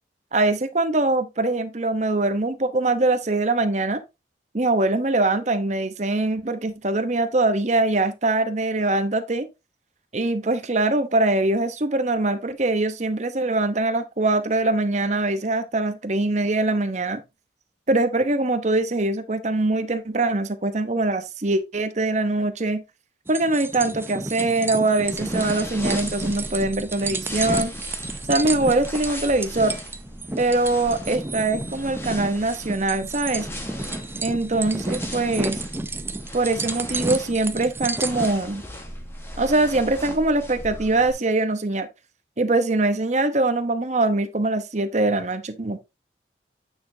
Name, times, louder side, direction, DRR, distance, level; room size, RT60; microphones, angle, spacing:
voice 1, 0.3-4.0 4.5-9.5 10.1-17.2 17.9-22.8 23.3-27.7 28.3-29.7 30.4-33.5 34.2-35.6 36.3-38.6 39.4-41.9 42.4-45.8, right 2 dB, 40° right, 0.9 m, -23 dB
sound 1, 23.3-38.3, right 2 dB, 10° right, 0.5 m, -31 dB
sound 2, 25.0-41.1, left 1 dB, 15° left, 1.4 m, -38 dB
9.3 x 6.1 x 2.7 m
head